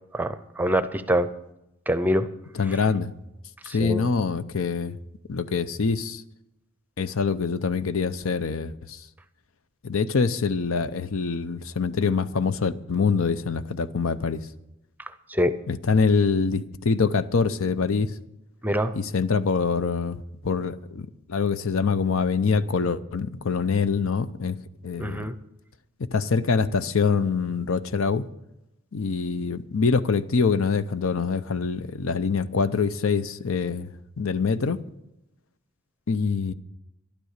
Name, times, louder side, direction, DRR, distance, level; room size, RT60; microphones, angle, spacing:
voice 1, 0.1-1.3 1.9-2.3 3.7-4.1 15.3-15.5 18.6-18.9 25.0-25.3, equal, 10° right, 0.6 m, -24 dB
voice 2, 2.5-3.1 3.6-5.0 5.3-6.2 7.0-9.0 9.8-14.4 15.7-18.1 18.9-24.6 24.8-25.2 26.1-28.2 28.9-33.9 34.2-34.8 36.1-36.5, left 5 dB, 80° left, 0.6 m, -25 dB
12.0 x 11.5 x 6.5 m
head